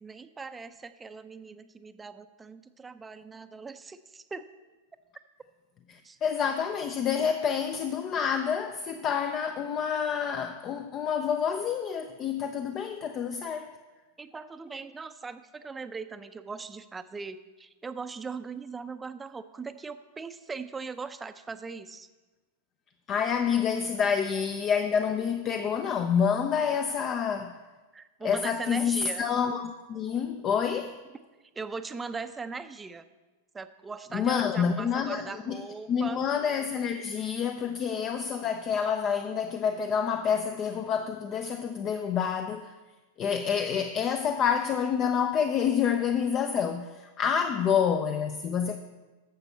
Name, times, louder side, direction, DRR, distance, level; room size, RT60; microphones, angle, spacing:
voice 1, 0.0-4.5 6.0-6.2 14.2-22.1 24.0-24.1 27.9-29.2 31.6-33.1 33.5-36.2, right 4 dB, 15° right, 0.6 m, -40 dB
voice 2, 5.9-13.7 23.1-27.6 28.2-31.0 34.1-35.6 35.9-42.7 43.2-48.8, left 7 dB, 35° left, 0.6 m, -28 dB
10.5 x 6.9 x 5.6 m
hypercardioid pair, 100°, 0 cm